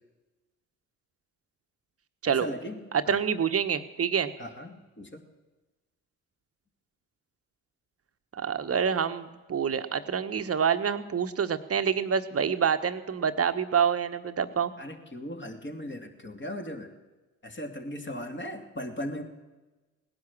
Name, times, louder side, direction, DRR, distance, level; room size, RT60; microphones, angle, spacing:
voice 1, 2.2-2.8 3.1-3.2 4.4-5.2 14.8-16.9 17.4-19.2, left 1 dB, 30° left, 3 dB, 2.7 m, -38 dB
voice 2, 2.9-4.3 8.3-14.7, right 7 dB, 35° right, 10 dB, 1.2 m, -27 dB
18.0 x 10.5 x 7.3 m, 1.2 s
hypercardioid pair, 55°, 40 cm